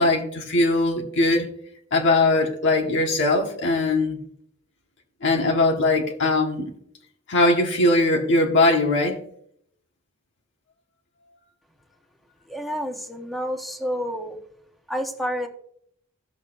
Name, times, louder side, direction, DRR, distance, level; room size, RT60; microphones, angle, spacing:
voice 1, 0.0-1.5 1.9-4.2 5.2-6.7 7.3-9.2, left 2 dB, 55° left, 1.4 m, -20 dB
voice 2, 12.5-14.4 14.9-15.5, equal, ahead, 1.1 m, -29 dB
16.5 x 6.6 x 2.6 m
head